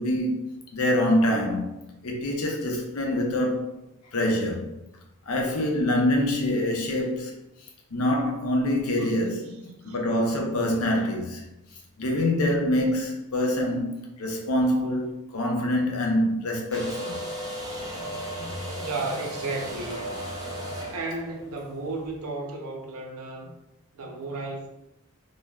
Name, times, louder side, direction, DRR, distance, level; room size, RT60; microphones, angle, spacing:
voice 1, 0.0-3.7 4.1-4.7 5.3-7.3 7.9-9.4 9.8-11.4 12.0-17.2, left 1 dB, 80° left, 0.6 m, -25 dB
voice 2, 9.0-10.0 17.9-20.1 20.9-23.5 23.9-24.7, right 3 dB, 80° right, 0.6 m, -35 dB
sound 1, 16.7-22.2, equal, 15° right, 0.4 m, -35 dB
3.1 x 2.1 x 2.3 m
head